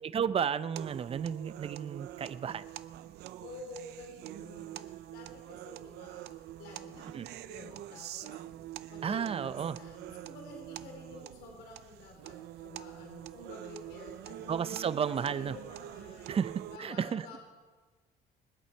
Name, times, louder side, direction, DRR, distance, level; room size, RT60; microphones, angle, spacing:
voice 1, 0.0-2.6 7.1-7.3 9.0-9.8 14.5-15.6 16.3-16.5 16.8-17.3, right 7 dB, 35° right, 14 dB, 0.6 m, -32 dB
sound 1, 0.8-16.8, right 13 dB, 75° right, 0.6 m, -45 dB
voice 2, 3.4-8.4 8.9-14.6 15.3-16.4 16.7-17.4, left 3 dB, 75° left, 1 dB, 3.4 m, -50 dB
26.0 x 8.7 x 4.6 m, 1.4 s
cardioid pair, 110°, 17 cm